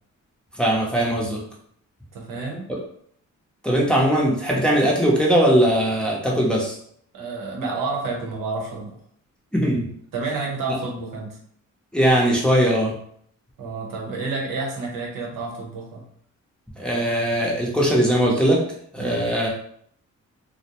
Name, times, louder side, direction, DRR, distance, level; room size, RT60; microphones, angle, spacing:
voice 1, 0.6-1.4 3.6-6.8 9.5-9.9 11.9-12.9 16.8-18.6 18.9-19.5, equal, 5° left, -3 dB, 0.6 m, -20 dB
voice 2, 2.1-2.7 7.1-9.0 10.1-11.4 13.6-16.0 19.0-19.3, right 3 dB, 90° right, 0 dB, 0.8 m, -30 dB
2.5 x 2.0 x 2.9 m, 0.65 s
cardioid pair, 110°, 32 cm